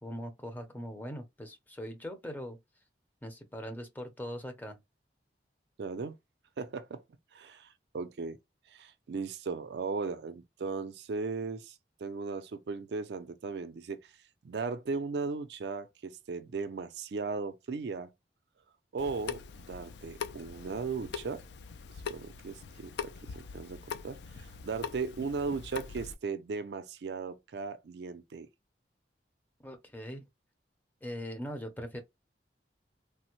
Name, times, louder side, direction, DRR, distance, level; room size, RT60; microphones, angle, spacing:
voice 1, 0.0-2.6 3.2-4.8 29.6-30.2 31.0-32.0, equal, 10° left, 0.5 m, -41 dB
voice 2, 5.8-6.2 6.6-7.0 7.3-8.4 8.7-11.7 12.0-14.1 14.4-18.1 18.9-21.4 22.1-28.5, right 4 dB, 65° right, 0.4 m, -37 dB
Water tap faucet / Sink (filling or washing) / Drip, 19.0-26.1, left 6 dB, 70° left, 0.4 m, -42 dB
3.3 x 2.1 x 2.9 m
head